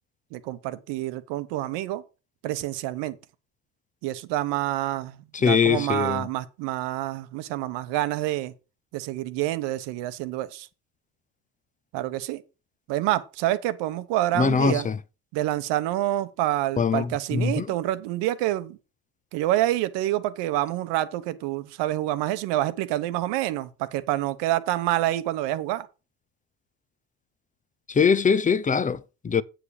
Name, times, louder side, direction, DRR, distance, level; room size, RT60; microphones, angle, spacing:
voice 1, 0.3-2.0 2.4-3.2 4.0-8.5 8.9-10.7 11.9-12.4 12.9-14.9 15.3-18.8 19.3-25.9, right 15 dB, 85° right, 1.1 m, -27 dB
voice 2, 5.3-6.3 14.3-15.0 16.8-17.7 27.9-29.4, left 6 dB, 20° left, 0.5 m, -22 dB
8.4 x 7.6 x 4.9 m
cardioid pair, 100°, 41 cm